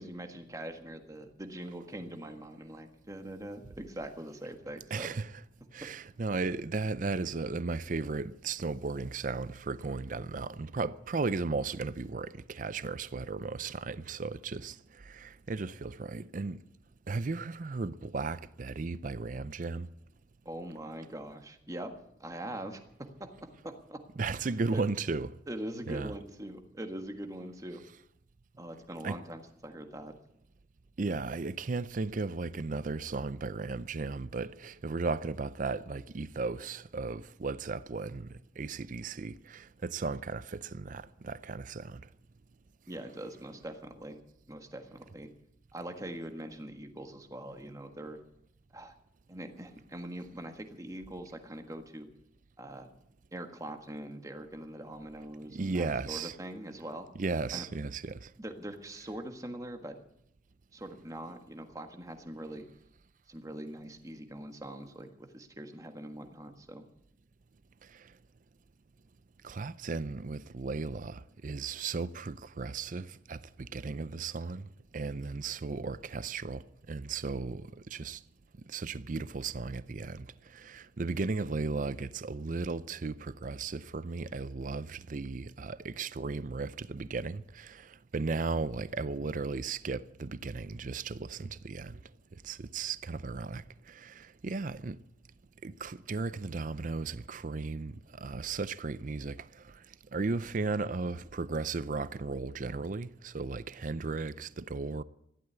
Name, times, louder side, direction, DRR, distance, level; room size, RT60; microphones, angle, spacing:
voice 1, 0.0-5.1 20.4-21.9 22.2-23.3 23.6-24.0 24.3-24.5 24.7-24.8 25.5-27.8 28.6-30.1 42.9-45.3 45.7-48.2 48.7-48.9 49.3-52.1 52.6-52.9 53.3-57.1 57.5-57.6 58.4-59.9 60.7-62.7 63.3-66.9, right 1 dB, 20° right, 1.5 m, -42 dB
voice 2, 4.9-5.4 5.7-16.6 17.1-19.9 24.2-25.4 25.9-26.1 29.0-29.2 31.0-42.0 55.5-56.4 57.1-58.3 69.4-74.7 74.9-78.2 78.7-80.3 80.5-92.0 92.4-95.0 95.6-99.8 100.1-105.0, right 4 dB, 45° right, 0.5 m, -35 dB
14.5 x 12.0 x 8.1 m
head